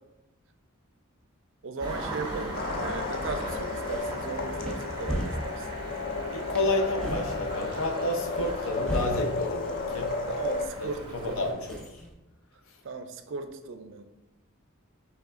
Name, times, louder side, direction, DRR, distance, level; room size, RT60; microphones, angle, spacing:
voice 1, 1.6-5.7 10.3-11.5 12.8-14.0, right 4 dB, 60° right, 8 dB, 0.4 m, -37 dB
Engine starting, 1.8-11.5, right 1 dB, 20° right, 1.2 m, -39 dB
sound 1, 2.5-10.7, left 4 dB, 45° left, 0.4 m, -34 dB
sound 2, 3.8-12.1, equal, 5° left, 0.7 m, -39 dB
voice 2, 6.3-10.2 10.8-11.8, left 1 dB, 75° left, 3 dB, 0.7 m, -30 dB
6.1 x 3.3 x 2.4 m, 1.0 s
head